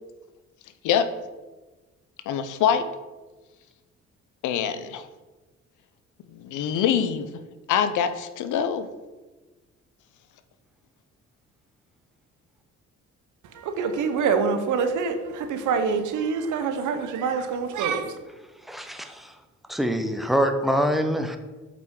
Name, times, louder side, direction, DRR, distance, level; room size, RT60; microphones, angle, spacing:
voice 1, 2.3-2.9 4.4-5.0 6.3-7.3 7.7-8.9, left 8 dB, 80° left, 10 dB, 0.6 m, -24 dB
voice 2, 13.5-18.1, right 5 dB, 80° right, 8 dB, 0.8 m, -25 dB
voice 3, 18.6-19.3 19.7-21.4, equal, ahead, 6 dB, 0.7 m, -25 dB
7.7 x 5.1 x 3.6 m, 1.2 s
cardioid pair, 90°, 30 cm